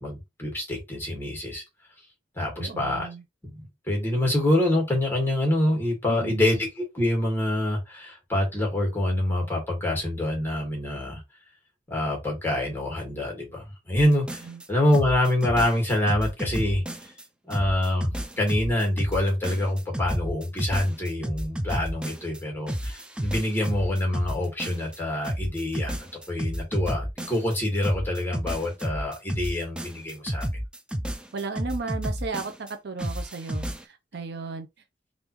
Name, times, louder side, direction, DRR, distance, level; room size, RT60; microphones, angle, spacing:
voice 1, 0.0-1.6 2.4-3.1 3.9-11.2 11.9-14.4 14.7-16.8 17.4-18.1 18.4-26.0 26.3-30.5, left 1 dB, 10° left, 1.6 m, -26 dB
voice 2, 2.6-3.2 6.1-6.6 14.4-14.6 31.3-34.7, right 4 dB, 65° right, 0.5 m, -35 dB
sound 1, 14.0-14.6 14.9-17.2 17.5-22.4 22.7-25.0 25.2-27.6 27.8-32.7 33.0-33.8, equal, 5° right, 0.4 m, -31 dB
3.5 x 2.5 x 3.0 m
head